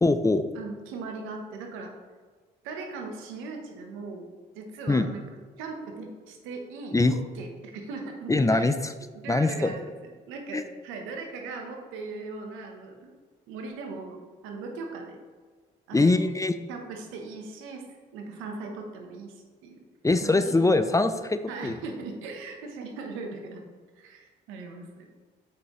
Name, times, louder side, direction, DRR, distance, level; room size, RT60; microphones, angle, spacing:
voice 1, 0.0-0.4 4.9-5.1 6.9-7.1 8.3-8.9 9.3-9.7 10.5-10.6 15.9-16.6 20.0-21.7, left 2 dB, 15° left, 10 dB, 0.5 m, -22 dB
voice 2, 0.5-1.9 2.6-4.3 4.5-5.2 5.6-8.7 9.1-9.9 10.3-13.1 13.5-15.2 15.9-16.3 16.7-17.8 18.1-19.8 20.2-20.9 21.5-23.6 24.0-25.1, right 3 dB, 90° right, 3 dB, 1.0 m, -39 dB
7.7 x 5.6 x 3.1 m, 1.5 s
supercardioid pair, 60°, 20 cm